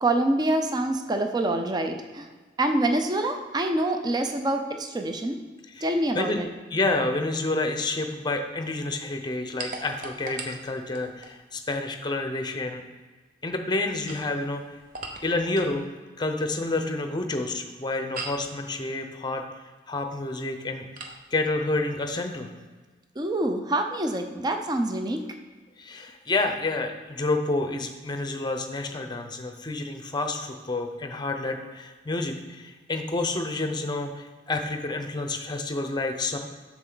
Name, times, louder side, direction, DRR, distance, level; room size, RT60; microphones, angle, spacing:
voice 1, 0.0-2.3 2.6-5.4 5.8-6.5 23.2-25.3, right 1 dB, 25° right, 5 dB, 0.5 m, -26 dB
voice 2, 6.7-12.8 13.4-14.6 15.2-15.8 16.2-19.4 19.9-20.9 21.3-22.5 25.8-36.4, left 2 dB, 25° left, 6 dB, 0.7 m, -29 dB
sound 1, 9.6-11.4 13.8-15.8 18.1-18.5 21.0-21.2, right 3 dB, 50° right, 0.8 m, -39 dB
7.8 x 6.2 x 3.9 m, 1.4 s
head